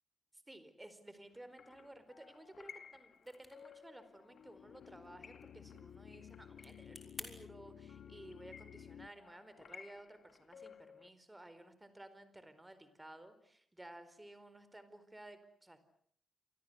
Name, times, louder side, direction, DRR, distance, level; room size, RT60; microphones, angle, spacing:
voice 1, 0.5-15.8, right 1 dB, 10° right, 12 dB, 4.6 m, -55 dB
sound 1, 1.3-11.1, left 6 dB, 60° left, 2.7 m, -58 dB
sound 2, 3.1-7.3, left 1 dB, 5° left, 6.0 m, -55 dB
sound 3, 4.1-9.1, left 8 dB, 80° left, 1.1 m, -55 dB
29.0 x 24.5 x 8.1 m, 0.62 s
wide cardioid pair, 120°, 0 cm